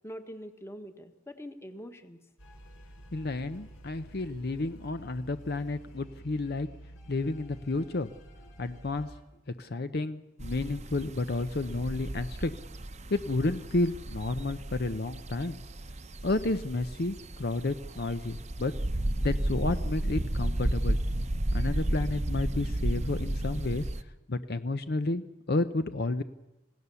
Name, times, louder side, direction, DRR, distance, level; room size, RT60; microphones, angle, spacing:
voice 1, 0.0-2.2, equal, 15° left, 7 dB, 1.4 m, -44 dB
sound 1, 2.4-9.2, right 1 dB, 75° left, 4.3 m, -50 dB
voice 2, 3.1-6.7 7.1-8.1 8.6-9.1 9.6-12.5 13.1-15.6 16.2-18.7 19.2-21.0 21.5-23.8 24.3-26.2, left 2 dB, 50° left, 10 dB, 0.7 m, -31 dB
sound 2, 10.4-24.0, right 1 dB, 35° right, 0.8 m, -33 dB
27.5 x 16.5 x 7.0 m, 1.0 s
head